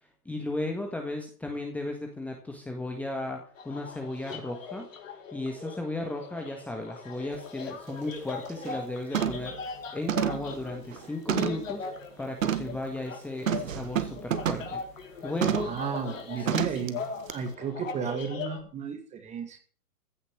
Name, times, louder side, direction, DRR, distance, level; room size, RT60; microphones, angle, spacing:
voice 1, 0.3-4.9 5.3-11.9 12.2-14.8 15.2-15.7 16.4-16.7, left 2 dB, 5° left, 2 dB, 1.6 m, -35 dB
sound 1, 3.5-18.6, left 6 dB, 55° left, 3.6 m, -40 dB
sound 2, 7.3-7.4 7.9-8.1 8.5-8.8 9.1-9.5 10.1-11.7 12.4-12.8 13.5-14.7 15.4-15.8 16.5-16.9 17.3-17.4, right 9 dB, 55° right, 1.7 m, -30 dB
voice 2, 15.4-17.0 17.3-19.6, right 6 dB, 15° right, 8 dB, 2.0 m, -34 dB
15.5 x 6.5 x 9.3 m, 0.42 s
figure-of-eight pair, 130°, 46 cm